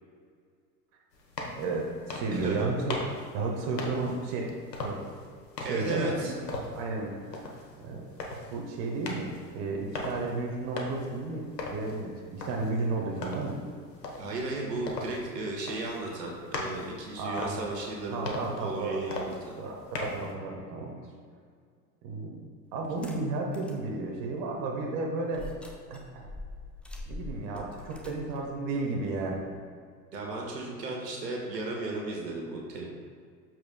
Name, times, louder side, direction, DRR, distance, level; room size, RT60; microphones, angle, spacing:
sound 1, 1.1-20.3, left 2 dB, 75° left, 1.2 m, -40 dB
voice 1, 1.5-3.0 3.3-5.0 5.6-6.4 6.7-7.4 7.8-8.1 8.5-13.6 17.2-17.5 18.1-19.1 19.6-21.0 22.0-22.4 22.7-25.5 25.9-26.3 27.1-29.4, right 3 dB, 40° right, 0 dB, 1.2 m, -33 dB
voice 2, 2.3-2.7 5.6-6.3 14.2-19.3 30.1-32.8, right 2 dB, 75° right, -1 dB, 1.5 m, -35 dB
sound 2, 22.8-23.8 24.3-24.4 25.3-29.6, left 2 dB, ahead, 0.6 m, -44 dB
13.0 x 4.6 x 2.2 m, 2.1 s
figure-of-eight pair, 80°, 50 cm